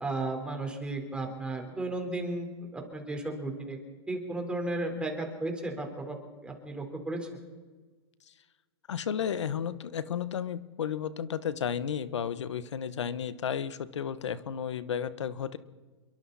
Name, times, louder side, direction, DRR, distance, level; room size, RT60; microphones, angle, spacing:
voice 1, 0.0-3.8 4.1-6.2 6.4-7.2, right 2 dB, 5° right, 2 dB, 4.4 m, -34 dB
voice 2, 8.9-15.6, left 8 dB, 85° left, 14 dB, 1.3 m, -33 dB
28.0 x 23.0 x 4.3 m, 1.3 s
hypercardioid pair, 135°, 15 cm